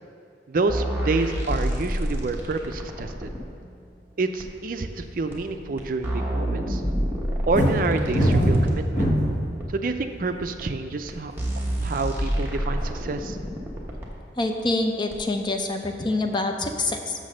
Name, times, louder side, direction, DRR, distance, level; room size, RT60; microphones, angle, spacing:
voice 1, 0.5-3.3 4.2-6.8 7.5-9.1 9.7-11.3 11.8-13.4, right 3 dB, 50° right, 7 dB, 0.4 m, -28 dB
sound 1, 0.7-3.4 4.4-4.5 5.3-5.4 5.8-8.8 9.6-9.7 10.6-10.7 11.1-11.2 11.4-14.1 15.1-15.2, equal, 10° right, 1.0 m, -28 dB
sound 2, 7.5-9.5 10.2-10.6, equal, 40° left, 1.3 m, -21 dB
voice 2, 14.4-17.1, left 2 dB, 25° left, 4 dB, 0.5 m, -26 dB
6.5 x 6.1 x 6.3 m, 2.3 s
head